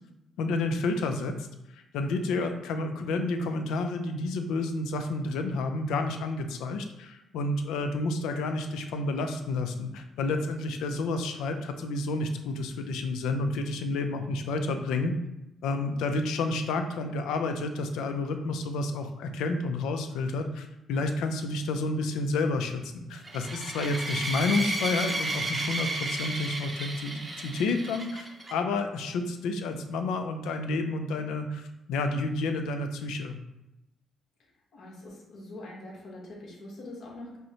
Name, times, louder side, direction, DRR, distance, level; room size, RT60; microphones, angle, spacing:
voice 1, 0.4-1.5 1.7-15.1 15.6-33.4, left 3 dB, 90° left, 7 dB, 0.4 m, -30 dB
sound 1, 23.2-28.5, right 2 dB, 25° right, 0.6 m, -33 dB
voice 2, 34.7-37.4, left 1 dB, 70° left, -3 dB, 1.2 m, -43 dB
5.2 x 2.1 x 2.9 m, 0.90 s
cardioid pair, 90°, 0 cm